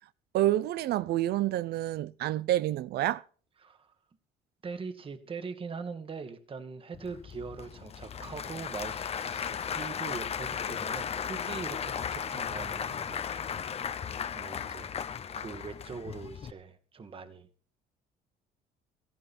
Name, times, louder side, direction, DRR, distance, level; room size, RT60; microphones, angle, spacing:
voice 1, 0.3-3.2, right 14 dB, 70° right, 0.7 m, -28 dB
voice 2, 3.6-3.9 4.6-13.5 13.9-17.5, right 5 dB, 30° right, 1.7 m, -42 dB
Applause / Crowd, 6.9-16.5, left 7 dB, 35° left, 0.8 m, -36 dB
16.5 x 14.5 x 4.3 m
cardioid pair, 110°, 17 cm